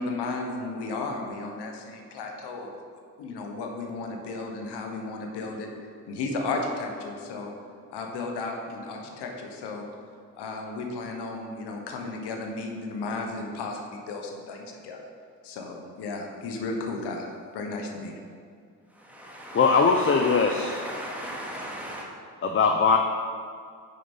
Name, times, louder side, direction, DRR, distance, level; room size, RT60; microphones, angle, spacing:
voice 1, 0.0-2.7 3.2-5.7 6.1-7.5 7.9-9.8 10.4-15.0 15.4-17.3 17.5-18.2, left 3 dB, 85° left, 2 dB, 1.1 m, -34 dB
voice 2, 18.9-22.1, equal, 5° right, -4 dB, 2.1 m, -37 dB
voice 3, 19.5-20.7 22.4-23.0, left 5 dB, 30° left, 4 dB, 0.6 m, -20 dB
6.5 x 5.6 x 5.4 m, 2.2 s
cardioid pair, 75°, 39 cm